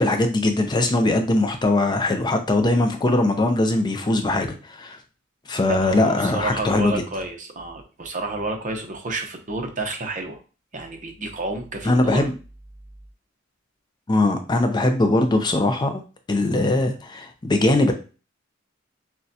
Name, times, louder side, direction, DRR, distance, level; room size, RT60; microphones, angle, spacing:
voice 1, 0.0-5.0 5.5-7.0 11.8-12.3 14.1-16.0 16.3-17.9, left 2 dB, 20° left, 5 dB, 0.4 m, -21 dB
voice 2, 5.6-10.4 10.7-12.3, right 2 dB, 40° right, 4 dB, 0.8 m, -30 dB
6.3 x 2.2 x 2.7 m, 0.34 s
head